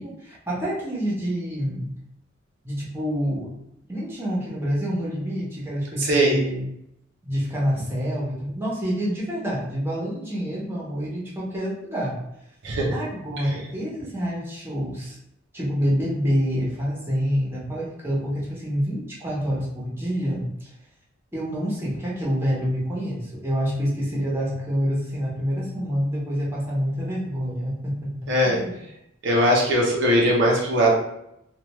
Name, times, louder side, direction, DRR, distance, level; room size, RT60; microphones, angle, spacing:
voice 1, 0.0-1.9 2.6-3.5 3.9-6.6 7.2-12.2 12.9-15.2 15.5-20.5 21.3-28.8, equal, 10° right, -6 dB, 0.9 m, -27 dB
voice 2, 6.0-6.4 12.6-13.0 13.4-13.5 28.3-28.6 29.2-30.9, equal, 60° right, -2 dB, 0.7 m, -20 dB
3.3 x 2.4 x 3.0 m, 0.80 s
head